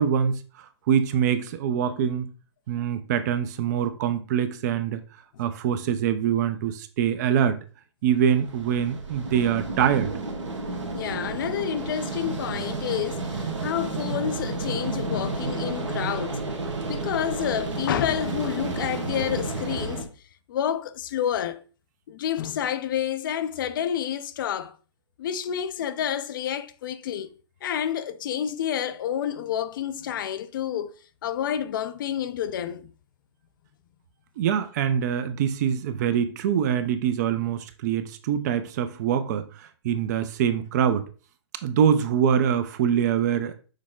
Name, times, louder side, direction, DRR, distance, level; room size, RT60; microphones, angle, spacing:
voice 1, 0.0-2.3 2.7-5.0 5.4-7.6 8.0-10.1 34.4-41.1 41.6-43.5, right 8 dB, 35° right, 0.5 m, -24 dB
sound 1, 8.1-20.0, right 3 dB, 80° right, 1.2 m, -31 dB
voice 2, 10.9-16.4 16.8-20.1 20.5-21.6 22.1-24.8 25.2-27.3 27.6-30.9 31.2-32.9, left 9 dB, 45° left, 0.4 m, -29 dB
6.4 x 2.2 x 3.7 m
hypercardioid pair, 135°, 15 cm